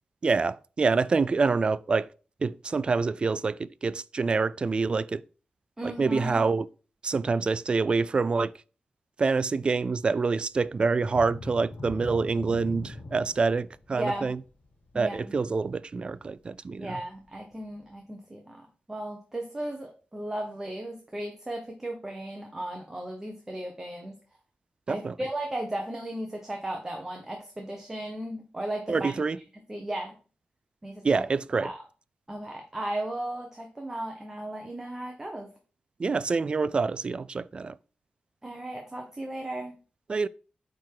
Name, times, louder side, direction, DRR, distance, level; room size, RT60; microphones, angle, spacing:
voice 1, 0.2-2.1 2.4-5.2 5.8-6.7 7.0-8.5 9.2-14.4 15.0-17.0 24.9-25.1 28.9-29.4 31.0-31.7 36.0-37.7 40.1-40.3, right 4 dB, 35° right, 0.3 m, -26 dB
voice 2, 5.8-6.4 13.9-14.3 14.9-15.4 16.8-24.1 24.9-29.2 29.7-30.2 30.8-31.2 31.6-31.8 32.3-35.5 38.4-39.7, right 1 dB, 15° right, 1.0 m, -35 dB
sound 1, 11.0-16.4 16.9-17.0 17.5-17.6, left 2 dB, 50° left, 1.2 m, -42 dB
9.0 x 3.7 x 4.7 m
wide cardioid pair, 165°, 3 cm